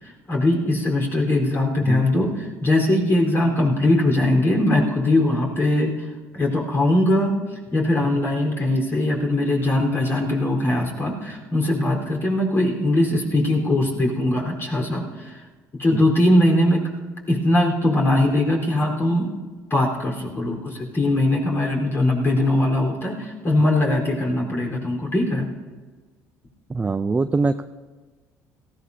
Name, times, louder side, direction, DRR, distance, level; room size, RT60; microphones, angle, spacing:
voice 1, 0.0-15.4 15.7-16.8 17.3-19.4 19.7-25.5, left 1 dB, 35° left, 0 dB, 4.2 m, -21 dB
voice 2, 26.7-27.6, right 3 dB, 20° right, 9 dB, 0.5 m, -23 dB
18.0 x 15.0 x 2.8 m, 1.3 s
supercardioid pair, 80°, 7 cm